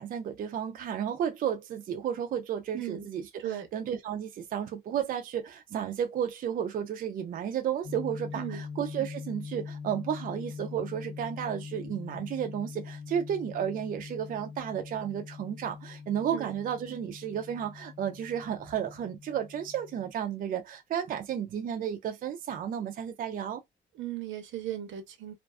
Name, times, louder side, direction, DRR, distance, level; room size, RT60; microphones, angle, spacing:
voice 1, 0.0-23.6, right 9 dB, 45° right, 0.4 m, -33 dB
voice 2, 2.7-3.1 3.4-3.7 8.3-8.6 16.3-16.5 23.9-25.4, right 12 dB, 90° right, 0.7 m, -37 dB
sound 1, 7.8-20.1, left 5 dB, 70° left, 0.7 m, -43 dB
2.4 x 2.3 x 2.2 m
wide cardioid pair, 165°, 19 cm